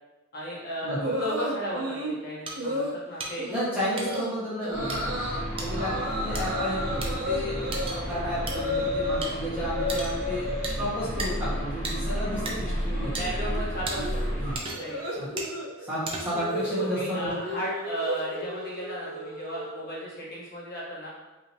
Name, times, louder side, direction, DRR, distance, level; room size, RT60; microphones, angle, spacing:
voice 1, 0.3-3.4 5.5-5.8 13.1-14.4 14.8-15.0 16.8-21.1, equal, 45° left, -7 dB, 1.1 m, -35 dB
sound 1, 1.0-2.2 2.6-2.9 3.4-3.7 4.0-4.3 4.6-5.4 5.8-9.2 9.5-10.8 11.1-11.6 11.8-20.0, left 1 dB, 85° right, 0.8 m, -33 dB
sound 2, 2.5-2.6 3.2-3.3 4.0-4.2 4.9-5.0 5.6-5.7 6.3-6.4 7.0-7.1 7.7-8.0 8.5-8.6 9.2-9.3 9.9-10.2 10.6-10.8 11.2-11.3 11.8-12.0 12.5-12.6 13.1-13.2 13.9-14.0 14.5-14.9 15.4-15.5 16.1-16.5, right 3 dB, 25° right, 0.5 m, -34 dB
voice 2, 3.5-5.2 5.6-10.5 10.8-13.2 14.4-14.6 15.2-15.3 15.9-17.3, equal, 5° right, -10 dB, 1.4 m, -32 dB
sound 3, 4.7-14.6, equal, 20° left, 1.5 m, -32 dB
5.0 x 2.8 x 2.8 m, 1.2 s
head